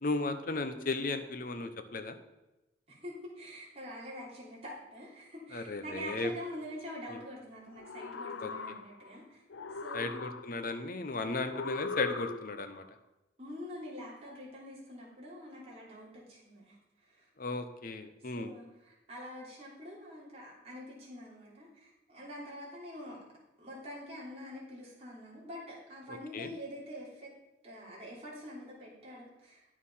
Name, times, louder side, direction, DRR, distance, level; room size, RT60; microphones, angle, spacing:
voice 1, 0.0-2.2 5.5-6.3 7.1-7.2 8.4-8.5 9.9-12.8 17.4-18.5 26.1-26.5, left 3 dB, 50° left, 9 dB, 0.8 m, -35 dB
voice 2, 2.9-9.4 9.7-10.3 13.4-16.8 17.0-17.3 18.3-23.2 23.6-27.3 27.6-29.6, equal, 35° right, -5 dB, 3.3 m, -45 dB
sound 1, 7.7-9.2 9.5-10.8 11.5-12.8, left 4 dB, 85° left, 0.6 m, -40 dB
9.5 x 6.6 x 5.6 m, 1.0 s
head